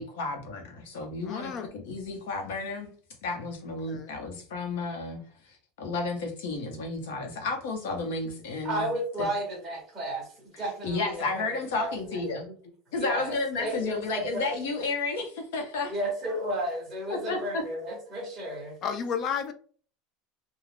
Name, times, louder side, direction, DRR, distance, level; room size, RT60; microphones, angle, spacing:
voice 1, 0.0-2.9 3.2-8.9 9.2-9.3 10.8-12.5 12.9-15.9 17.1-17.6, left 3 dB, 85° left, 0.9 m, -32 dB
voice 2, 1.2-1.7 3.7-4.1 18.8-19.5, left 7 dB, 30° left, 0.3 m, -32 dB
voice 3, 8.6-10.3 10.6-12.5 12.9-14.6 15.9-18.8, right 1 dB, 5° right, 0.9 m, -33 dB
2.4 x 2.2 x 3.3 m
supercardioid pair, 175°, 0 cm